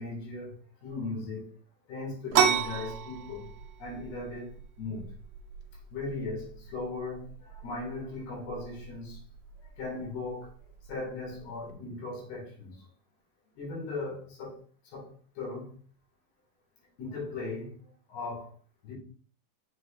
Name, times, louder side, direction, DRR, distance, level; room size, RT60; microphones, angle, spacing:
voice 1, 0.0-1.5 1.9-3.5 3.8-4.5 4.8-5.1 5.9-9.2 9.8-10.5 10.9-12.9 13.6-14.6 14.9-15.8 17.0-17.8 18.1-18.5 18.8-18.9, left 3 dB, 90° left, 4.4 m, -38 dB
sound 1, 2.3-11.7, right 8 dB, 80° right, 1.7 m, -34 dB
6.9 x 6.3 x 2.5 m
omnidirectional pair, 4.5 m